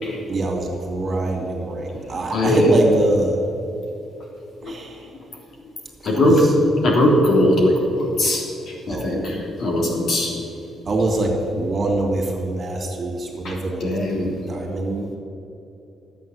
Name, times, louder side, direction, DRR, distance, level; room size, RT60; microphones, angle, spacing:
voice 1, 0.3-3.4 4.6-5.0 6.1-6.3 8.9-9.1 10.9-15.1, right 2 dB, 40° right, 0 dB, 2.7 m, -24 dB
voice 2, 2.3-2.8 4.6-4.7 5.1-5.2 6.0-6.4 6.8-10.3 13.4-14.4, left 1 dB, 60° left, -2 dB, 3.2 m, -20 dB
11.0 x 8.3 x 7.4 m, 2.8 s
cardioid pair, 90°, 0 cm